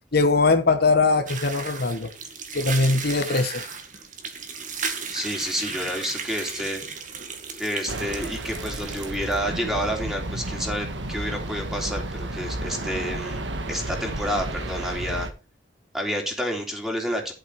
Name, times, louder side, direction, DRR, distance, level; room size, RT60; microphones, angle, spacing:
voice 1, 0.1-2.1 2.5-3.7, left 3 dB, 60° left, 1.3 m, -21 dB
sound 1, 1.3-9.4, right 5 dB, 45° right, 2.1 m, -35 dB
voice 2, 5.1-6.8 7.6-13.4 13.7-15.3 15.9-17.3, equal, 5° right, 3.2 m, -29 dB
sound 2, 7.9-15.3, right 1 dB, 75° right, 1.7 m, -32 dB
11.5 x 7.8 x 4.7 m
head